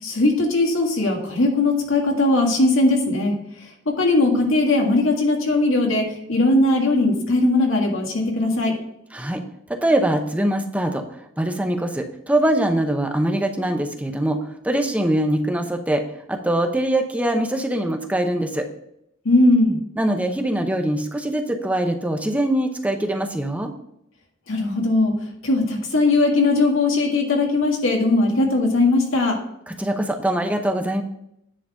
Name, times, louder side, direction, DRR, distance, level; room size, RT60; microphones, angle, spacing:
voice 1, 0.0-3.3 3.9-8.7 19.2-19.8 24.5-25.1 25.4-29.4, left 2 dB, 85° left, 1 dB, 2.0 m, -19 dB
voice 2, 9.1-9.4 9.7-11.0 11.4-16.0 16.3-18.7 20.0-23.7 29.8-31.0, right 1 dB, 5° right, 4 dB, 0.8 m, -22 dB
9.9 x 4.0 x 6.2 m, 0.77 s
head